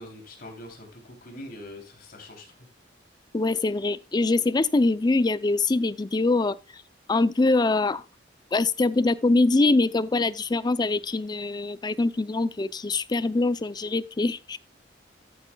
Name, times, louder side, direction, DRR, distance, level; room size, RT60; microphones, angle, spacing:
voice 1, 0.0-2.7, left 1 dB, 50° left, 3.1 m, -43 dB
voice 2, 3.3-6.8 7.1-8.0 8.5-14.6, left 2 dB, 25° left, 0.4 m, -23 dB
13.5 x 9.0 x 2.3 m
head